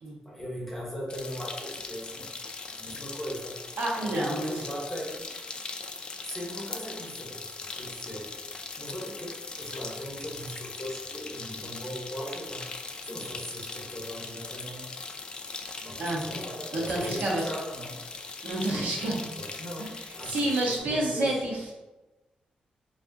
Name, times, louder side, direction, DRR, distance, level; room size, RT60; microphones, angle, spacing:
voice 1, 0.2-2.3 2.7-5.3 6.2-7.4 7.7-9.3 9.6-12.7 13.0-15.0 15.8-18.0 18.6-21.3, equal, 10° left, -4 dB, 1.0 m, -39 dB
sound 1, 1.1-20.8, left 4 dB, 35° left, 0.3 m, -40 dB
voice 2, 3.8-4.6 16.0-16.3 16.7-17.5 18.4-19.4 19.8-21.7, right 1 dB, 85° right, -3 dB, 1.0 m, -29 dB
4.8 x 2.6 x 2.6 m, 1.1 s
wide cardioid pair, 170°, 3 cm